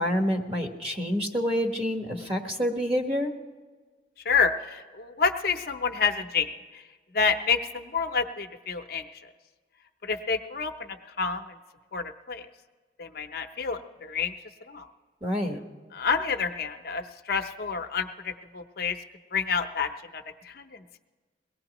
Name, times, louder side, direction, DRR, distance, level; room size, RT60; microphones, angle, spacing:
voice 1, 0.0-3.3 15.2-15.6, equal, 30° right, 3 dB, 1.1 m, -27 dB
voice 2, 4.2-6.8 7.1-9.3 10.0-11.6 11.9-12.5 13.0-14.3 14.7-14.9 15.9-19.0 19.3-21.0, left 5 dB, 55° left, 6 dB, 0.6 m, -29 dB
22.5 x 17.5 x 2.9 m, 1.4 s
head